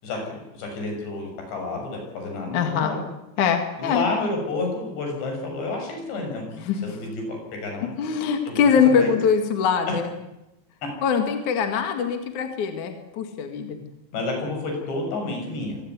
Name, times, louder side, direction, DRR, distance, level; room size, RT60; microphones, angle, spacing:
voice 1, 0.0-3.0 3.8-6.5 6.8-7.9 8.5-8.7 9.0-9.1 14.1-15.8, left 2 dB, 70° left, 2 dB, 9.1 m, -30 dB
voice 2, 2.5-2.9 3.4-4.1 6.6-6.8 8.0-10.1 11.0-13.8, left 6 dB, 50° left, 6 dB, 2.9 m, -22 dB
26.0 x 17.0 x 9.7 m, 0.93 s
omnidirectional pair, 5.3 m